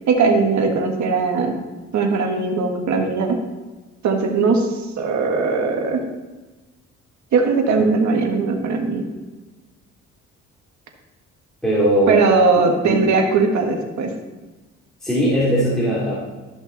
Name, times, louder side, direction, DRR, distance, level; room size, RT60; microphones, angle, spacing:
voice 1, 0.1-1.5 1.9-3.4 4.0-4.7 5.0-6.0 7.3-9.0 12.1-14.1, right 4 dB, 70° right, 3 dB, 1.6 m, -19 dB
voice 2, 11.6-12.2 12.8-13.0 15.0-16.3, right 1 dB, ahead, -8 dB, 2.7 m, -19 dB
13.0 x 5.9 x 4.0 m, 1.2 s
cardioid pair, 90°, 30 cm